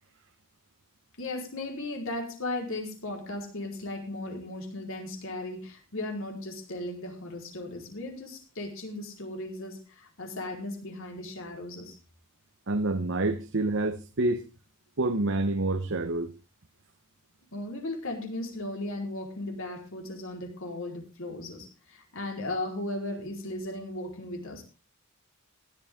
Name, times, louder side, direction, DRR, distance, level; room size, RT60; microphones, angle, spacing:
voice 1, 1.2-12.0 17.5-24.6, left 2 dB, 60° left, 4.4 m, -36 dB
voice 2, 12.7-14.5 15.0-16.3, right 2 dB, 55° right, 1.1 m, -27 dB
16.0 x 11.5 x 3.7 m
head